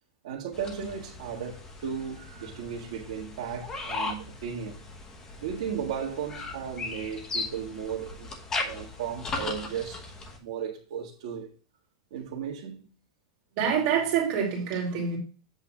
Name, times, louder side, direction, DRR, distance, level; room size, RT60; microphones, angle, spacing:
voice 1, 0.2-4.8 5.4-8.3 8.6-10.0 10.4-11.5 12.1-12.9, right 7 dB, 65° right, 1.6 m, -35 dB
sound 1, 0.5-10.4, left 3 dB, 15° left, 1.1 m, -38 dB
voice 2, 13.6-15.2, right 7 dB, 40° right, 2.6 m, -26 dB
8.1 x 3.4 x 5.9 m
supercardioid pair, 170°, 4 cm